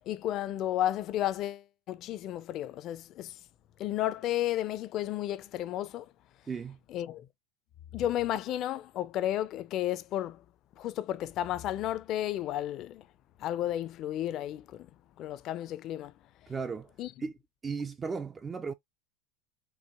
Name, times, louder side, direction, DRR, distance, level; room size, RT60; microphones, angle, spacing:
voice 1, 0.1-3.4 3.8-6.1 6.9-7.3 7.9-10.4 10.8-13.0 13.4-14.9 15.2-16.1 17.0-17.1, left 12 dB, 45° left, 0.5 m, -32 dB
voice 2, 6.5-6.8 16.5-16.9 17.2-17.3 17.6-18.7, right 5 dB, 20° right, 0.3 m, -35 dB
4.7 x 2.2 x 2.9 m
supercardioid pair, 130°, 0 cm